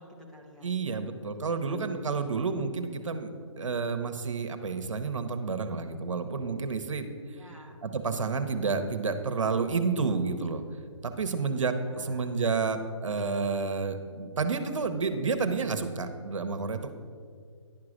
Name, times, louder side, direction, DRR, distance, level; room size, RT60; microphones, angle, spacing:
voice 1, 0.0-0.7 1.3-1.8 2.7-3.1 7.4-7.8 11.8-12.3, equal, 5° left, -2 dB, 0.6 m, -52 dB
voice 2, 0.6-7.1 7.3-7.4 7.8-10.6 11.0-16.9, right 4 dB, 75° right, 8 dB, 0.9 m, -30 dB
10.5 x 4.8 x 6.3 m, 2.1 s
hypercardioid pair, 155°, 16 cm